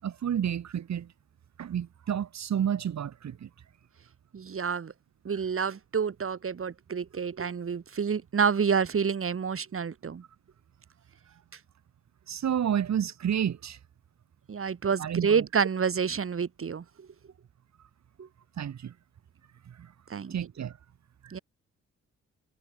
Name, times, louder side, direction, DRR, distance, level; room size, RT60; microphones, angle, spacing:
voice 1, 0.0-1.1 1.6-3.5 12.3-13.8 15.0-15.5 18.6-18.9 19.6-19.9 20.3-20.8 21.2-21.4, right 9 dB, 70° right, 7.3 m, -30 dB
voice 2, 4.3-4.9 5.2-10.2 14.5-17.1 18.2-18.3 20.1-20.3 21.3-21.4, right 6 dB, 50° right, 4.9 m, -28 dB
cardioid pair, 75°, 29 cm